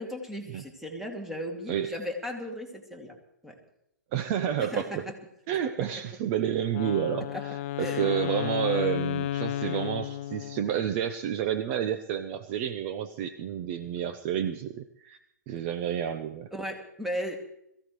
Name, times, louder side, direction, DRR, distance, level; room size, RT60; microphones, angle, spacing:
voice 1, 0.0-3.2 3.4-3.6 4.6-5.1 5.8-5.9 7.3-7.5 7.8-8.1 15.5-15.6 16.5-17.4, equal, 5° right, 2 dB, 2.6 m, -36 dB
voice 2, 4.1-5.0 5.5-7.3 7.8-15.2 15.5-16.5, right 9 dB, 40° right, 10 dB, 0.9 m, -30 dB
Wind instrument woodwind instrument, 6.7-10.9, left 12 dB, 40° left, 0.5 m, -32 dB
22.0 x 15.5 x 3.2 m, 0.77 s
hypercardioid pair, 125°, 10 cm